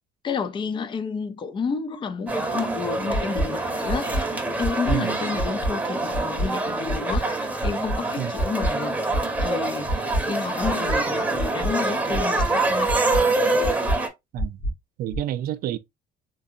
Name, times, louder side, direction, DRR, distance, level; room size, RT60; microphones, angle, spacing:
voice 1, 0.2-13.0, left 5 dB, 30° left, 0.4 m, -31 dB
sound 1, 2.3-14.1, right 2 dB, 10° right, 0.9 m, -26 dB
sound 2, 3.1-3.4 3.9-4.2 4.6-4.9 5.4-5.7 6.1-6.5 6.9-7.2 7.6-8.0 8.4-8.7 9.1-9.5 9.9-10.2 10.6-11.0 11.4-11.7 12.1-12.5 12.9-13.2 13.6-13.9 14.4-14.7 15.1-15.2, equal, 75° left, 1.8 m, -25 dB
voice 2, 4.9-5.2 8.2-8.3 14.3-14.6 15.0-15.8, right 12 dB, 60° right, 0.5 m, -29 dB
3.8 x 2.7 x 2.5 m
cardioid pair, 110°, 17 cm